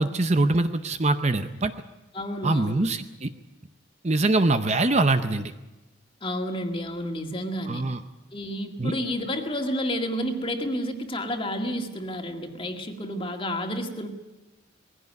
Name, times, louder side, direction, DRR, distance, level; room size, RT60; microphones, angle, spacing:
voice 1, 0.0-1.7 2.4-3.3 4.0-5.5 7.7-8.0 8.8-8.9, right 2 dB, 30° right, 9 dB, 0.7 m, -23 dB
voice 2, 2.1-2.9 6.2-7.8 8.3-14.1, equal, 25° left, 4 dB, 2.0 m, -30 dB
20.5 x 16.0 x 9.4 m, 1.1 s
head